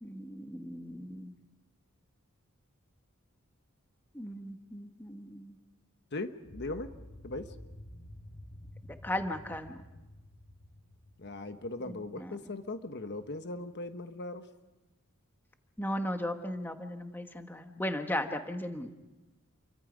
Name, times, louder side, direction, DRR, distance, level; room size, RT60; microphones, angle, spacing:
voice 1, 0.0-1.3 4.1-5.6 8.8-9.8 15.8-18.9, left 1 dB, 10° left, 6 dB, 1.3 m, -36 dB
voice 2, 6.1-6.9 7.2-7.5 11.2-14.4, left 2 dB, 55° left, 8 dB, 1.2 m, -39 dB
sound 1, 6.4-12.5, left 1 dB, 85° left, 4.8 m, -50 dB
29.5 x 23.5 x 5.2 m, 1.1 s
head